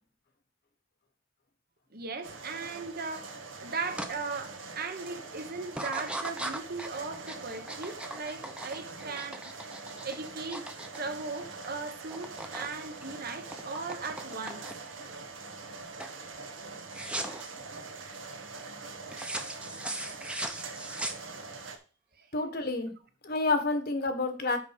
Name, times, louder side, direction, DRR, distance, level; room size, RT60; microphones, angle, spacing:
voice 1, 1.9-9.5 10.0-10.7 11.0-14.7 20.9-21.0 22.2-22.3, right 4 dB, 50° right, 1.2 m, -38 dB
sound 1, 2.2-21.8, right 4 dB, 80° right, 1.5 m, -44 dB
sound 2, 4.0-4.1 4.6-5.0 5.7-11.7 12.0-12.7 13.0-15.0 15.5-15.7 16.0-16.2 16.9-17.5 19.1-21.6, right 1 dB, 5° right, 0.9 m, -39 dB
voice 2, 22.3-22.9 23.2-24.6, left 3 dB, 55° left, 1.5 m, -29 dB
6.2 x 5.4 x 6.6 m
head